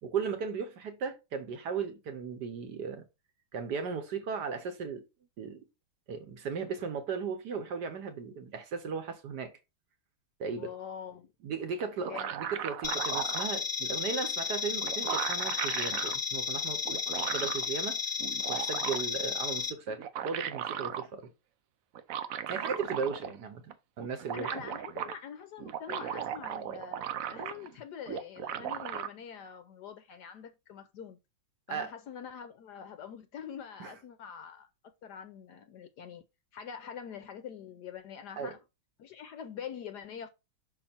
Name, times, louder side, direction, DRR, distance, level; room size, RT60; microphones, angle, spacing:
voice 1, 0.0-3.0 3.5-5.0 5.4-5.7 6.1-9.5 10.4-10.7 11.4-17.0 17.3-18.0 18.5-21.3 22.5-24.5 31.7-31.9 33.8-33.9 38.4-38.5, right 5 dB, 60° right, 1.4 m, -36 dB
voice 2, 10.6-11.3 12.0-12.3 24.3-31.2 31.7-34.7 35.0-36.2 36.5-38.6 39.0-40.3, left 8 dB, 70° left, 1.0 m, -44 dB
sound 1, 11.8-13.5 14.5-14.6 14.8-16.2 16.8-17.7 18.2-19.2 19.9-21.1 21.9-23.4 23.7-23.8 24.0-25.1 25.6-27.7 28.1-29.1, right 9 dB, 85° right, 0.7 m, -36 dB
sound 2, 12.8-19.7, left 6 dB, 40° left, 0.9 m, -33 dB
5.9 x 4.4 x 4.3 m
omnidirectional pair, 2.2 m